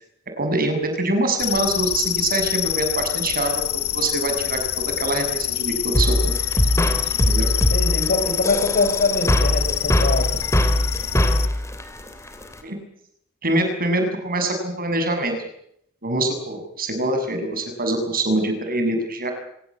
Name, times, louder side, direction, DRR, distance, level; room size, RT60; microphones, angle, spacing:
voice 1, 0.4-6.3 7.3-7.5 12.6-12.8 13.4-15.4 16.0-19.3, right 2 dB, 40° right, 6 dB, 6.9 m, -24 dB
sound 1, 1.4-11.5, left 12 dB, 70° left, 1.1 m, -26 dB
sound 2, 5.9-12.6, left 1 dB, 15° left, 3.3 m, -21 dB
voice 2, 7.7-10.4, left 2 dB, 45° left, 7 dB, 5.8 m, -23 dB
26.5 x 17.5 x 9.8 m, 0.73 s
head